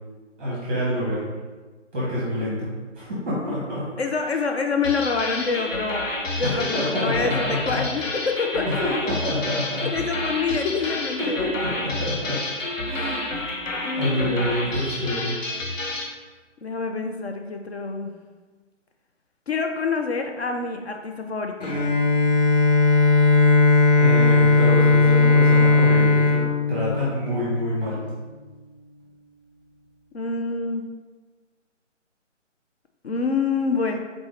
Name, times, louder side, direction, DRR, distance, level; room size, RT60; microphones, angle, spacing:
voice 1, 0.4-1.2 1.9-2.7 2.9-3.9 4.3-4.4 6.4-7.8 8.6-9.9 10.8-10.9 11.2-12.4 12.9-13.2 13.9-15.3 24.0-26.4 26.7-28.0, left 1 dB, 10° right, -8 dB, 0.7 m, -27 dB
voice 2, 4.0-6.0 6.4-8.8 9.9-11.4 13.8-14.4 16.6-18.1 19.5-21.7 30.1-30.8 33.0-34.0, left 4 dB, 60° left, 4 dB, 0.5 m, -26 dB
sound 1, 4.8-16.1, left 2 dB, 90° left, 0.8 m, -30 dB
Bowed string instrument, 21.6-27.6, left 3 dB, 30° left, 1.2 m, -17 dB
3.9 x 3.5 x 3.2 m, 1.3 s
figure-of-eight pair, 145°, 37 cm